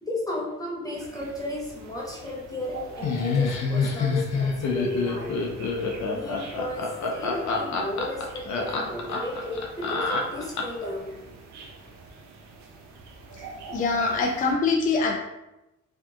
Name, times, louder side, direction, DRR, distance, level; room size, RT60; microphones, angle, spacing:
voice 1, 0.0-5.4 6.0-11.2, left 1 dB, 10° left, -4 dB, 0.8 m, -33 dB
sound 1, 0.9-14.5, right 3 dB, 65° right, 0.6 m, -44 dB
Laughter, 3.0-10.9, left 4 dB, 70° left, 0.6 m, -27 dB
voice 2, 13.7-15.2, left 4 dB, 30° left, 0 dB, 0.3 m, -23 dB
3.4 x 2.6 x 2.4 m, 0.94 s
cardioid pair, 90°, 30 cm